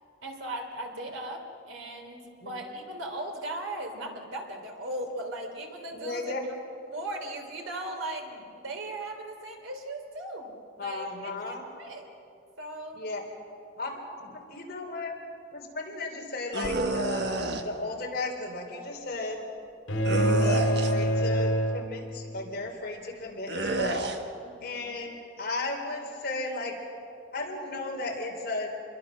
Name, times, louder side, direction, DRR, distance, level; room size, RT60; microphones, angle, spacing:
voice 1, 0.2-6.3 6.9-10.5 10.8-12.1 12.6-13.0 24.4-24.9, right 1 dB, 80° right, 3 dB, 3.2 m, -38 dB
voice 2, 5.9-6.4 10.8-11.6 12.9-13.2 13.8-15.2 15.5-19.4 19.9-24.1 24.6-26.7 27.3-28.7, left 2 dB, 50° left, 0 dB, 3.7 m, -35 dB
sound 1, 16.5-17.6 20.0-21.1 23.5-24.2, right 2 dB, 55° right, 1.4 m, -30 dB
sound 2, 19.9-22.4, equal, 85° left, 2.8 m, -26 dB
27.0 x 22.0 x 6.4 m, 2.6 s
head